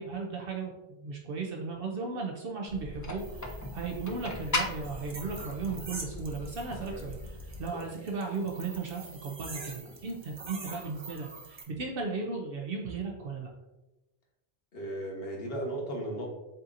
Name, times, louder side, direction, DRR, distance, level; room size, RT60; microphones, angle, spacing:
voice 1, 0.0-13.5, right 4 dB, 65° right, 0 dB, 0.8 m, -36 dB
sound 1, 2.7-7.7, left 2 dB, 30° left, 0.3 m, -38 dB
sound 2, 3.2-11.6, right 3 dB, 30° right, 0.7 m, -46 dB
voice 2, 14.7-16.3, right 1 dB, 70° left, -1 dB, 1.3 m, -36 dB
7.7 x 2.8 x 2.5 m, 1.0 s
omnidirectional pair, 1.1 m